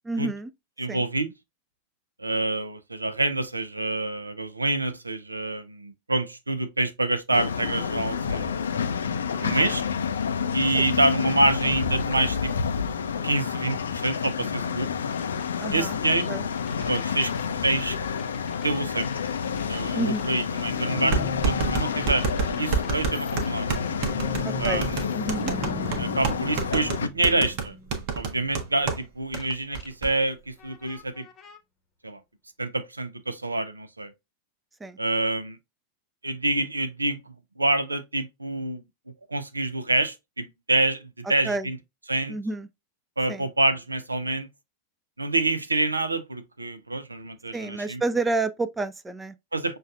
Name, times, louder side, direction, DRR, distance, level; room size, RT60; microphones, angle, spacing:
voice 1, 0.1-0.5 0.9-1.0 9.4-9.7 15.6-16.0 16.3-16.5 19.9-20.3 24.4-24.9 25.1-25.5 34.8-35.0 41.4-41.7 42.3-42.7 43.3-43.4 47.5-49.3, right 2 dB, 10° right, 0.3 m, -29 dB
voice 2, 0.8-1.3 2.2-8.6 9.3-9.8 10.5-12.5 13.2-14.9 15.7-16.3 16.9-17.3 17.6-18.0 18.6-19.1 19.7-22.3 22.6-23.8 24.6-25.1 26.0-27.7 28.2-31.3 32.0-32.2 32.6-34.1 35.0-35.6 36.2-38.8 39.3-41.8 42.1-42.4 43.2-44.5 45.2-48.0 49.5-49.8, right 2 dB, 80° right, 0.5 m, -27 dB
sound 1, 7.3-27.1, left 6 dB, 70° left, 0.4 m, -29 dB
sound 2, 15.1-15.9 16.5-28.8 29.4-29.9 30.6-31.6, left 3 dB, 30° left, 0.8 m, -40 dB
sound 3, 20.2-20.3 21.1-29.0 29.3-29.4 29.7-30.1, right 6 dB, 45° right, 0.9 m, -28 dB
6.3 x 2.3 x 2.3 m
figure-of-eight pair, 90°, 0 cm